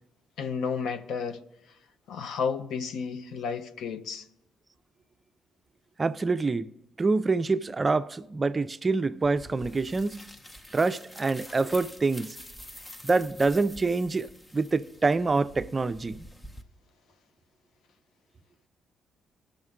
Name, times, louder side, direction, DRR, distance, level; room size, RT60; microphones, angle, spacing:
voice 1, 0.4-1.4 2.1-4.2, left 6 dB, 80° left, 0.6 m, -32 dB
voice 2, 6.0-6.7 7.0-10.3 10.7-12.4 13.0-16.2, right 3 dB, 30° right, 0.4 m, -26 dB
sound 1, 9.2-16.6, equal, 15° left, 0.7 m, -47 dB
18.5 x 6.4 x 3.6 m
cardioid pair, 90°, 0 cm